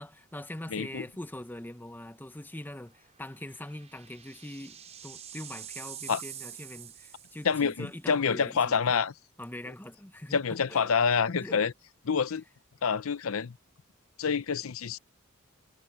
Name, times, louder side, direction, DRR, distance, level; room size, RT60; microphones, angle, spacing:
voice 1, 0.0-9.0 9.4-10.4 10.7-10.9 11.4-11.6, left 1 dB, 10° left, 0.7 m, -43 dB
voice 2, 0.7-1.0 6.1-6.2 7.4-9.1 10.3-11.7 12.1-12.4 12.8-13.6 14.2-15.0, left 6 dB, 75° left, 0.6 m, -27 dB
sound 1, 1.1-1.3 1.6-1.7 3.2-7.8, right 9 dB, 30° right, 5.7 m, -46 dB
head